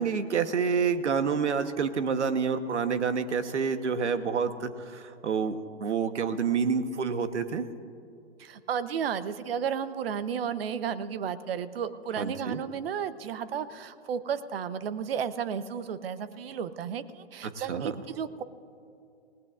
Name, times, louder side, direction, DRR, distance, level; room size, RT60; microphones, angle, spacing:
voice 1, 0.0-7.7 12.2-12.6 17.4-17.9, right 6 dB, 80° right, 11 dB, 1.2 m, -28 dB
voice 2, 8.4-18.4, right 7 dB, 55° right, 14 dB, 0.9 m, -33 dB
27.5 x 18.5 x 2.5 m, 2.6 s
hypercardioid pair, 130°, 35 cm